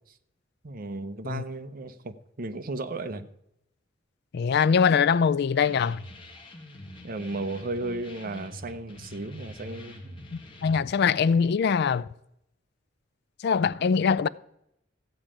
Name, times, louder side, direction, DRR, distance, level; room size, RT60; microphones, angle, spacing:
voice 1, 0.6-3.3 7.0-10.2, right 2 dB, 50° right, 0.8 m, -35 dB
voice 2, 4.3-6.1 10.3-12.1 13.4-14.3, left 6 dB, 60° left, 0.4 m, -23 dB
sound 1, 5.6-10.8, left 1 dB, 25° left, 1.9 m, -45 dB
14.5 x 4.9 x 9.0 m
head